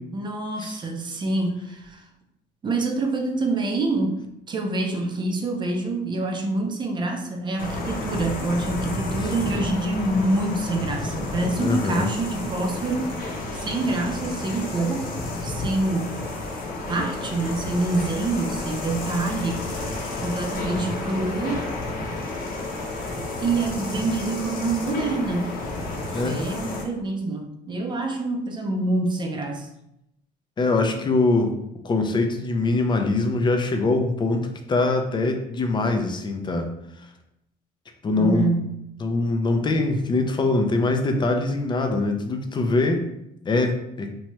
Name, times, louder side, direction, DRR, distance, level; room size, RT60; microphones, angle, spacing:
voice 1, 0.1-2.1 2.6-15.1 15.4-16.2 16.9-21.7 23.4-25.6 25.9-29.7 38.2-38.7, right 2 dB, 25° right, 4 dB, 0.5 m, -26 dB
sound 1, 7.6-26.8, left 2 dB, 55° left, 0.7 m, -31 dB
voice 2, 11.6-12.1 26.1-26.4 30.6-31.5 31.8-36.7 38.0-38.5 39.0-43.1 43.4-44.1, left 2 dB, 25° left, 4 dB, 0.4 m, -23 dB
2.9 x 2.2 x 3.0 m, 0.81 s
cardioid pair, 110°, 17 cm